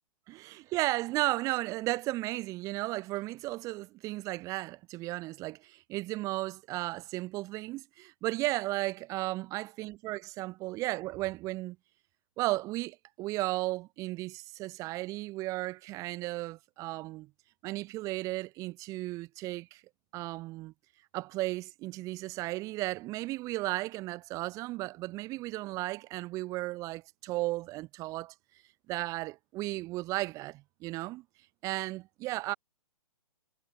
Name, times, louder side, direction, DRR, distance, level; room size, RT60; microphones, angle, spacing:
voice 1, 0.3-11.8 12.4-17.3 17.6-19.8 20.1-20.7 21.1-28.3 28.9-31.2 31.6-32.5, right 19 dB, 15° right, 1.0 m, -34 dB
figure-of-eight pair, 130°, 19 cm